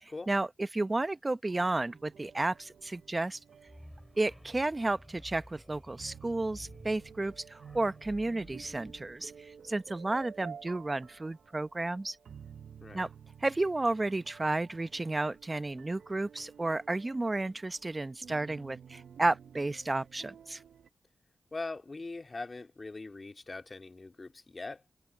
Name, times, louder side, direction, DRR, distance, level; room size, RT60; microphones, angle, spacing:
voice 1, 0.0-3.4 4.2-12.2 12.9-13.1 13.4-20.6, right 2 dB, 30° right, 0.8 m, -32 dB
sound 1, 1.5-20.9, right 7 dB, 85° right, 0.7 m, -52 dB
sound 2, 3.7-9.9, equal, 5° left, 3.0 m, -53 dB
voice 2, 21.5-25.0, left 3 dB, 40° left, 2.2 m, -42 dB
cardioid pair, 60°, 0 cm